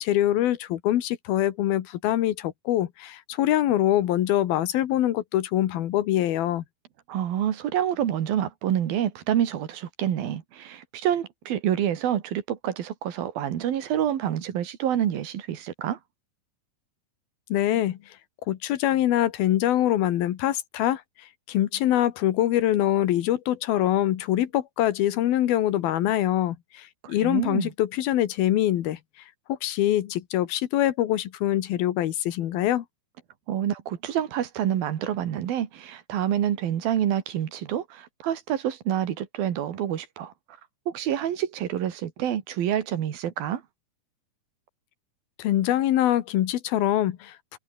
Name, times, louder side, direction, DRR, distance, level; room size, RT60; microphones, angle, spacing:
voice 1, 0.0-6.6 17.5-18.0 18.5-21.0 21.5-29.0 29.5-32.8 45.4-47.6, left 13 dB, 90° left, 3.3 m, -24 dB
voice 2, 7.1-16.0 27.0-27.7 33.5-40.3 40.9-43.6, right 10 dB, 85° right, 3.8 m, -27 dB
omnidirectional pair, 4.1 m